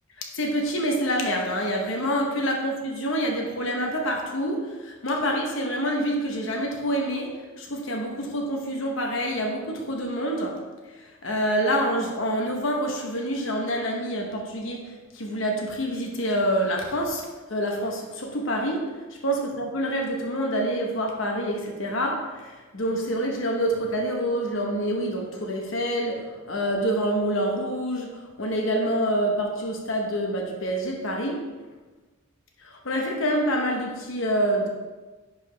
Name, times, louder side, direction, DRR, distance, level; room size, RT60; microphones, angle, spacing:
voice 1, 0.4-4.7 5.0-7.3 7.6-10.6 11.2-14.8 15.2-17.2 17.5-18.9 19.2-22.2 22.7-26.2 26.5-28.1 28.4-31.5 32.9-34.7, equal, 65° left, 1 dB, 1.0 m, -26 dB
10.5 x 4.8 x 3.3 m, 1.3 s
head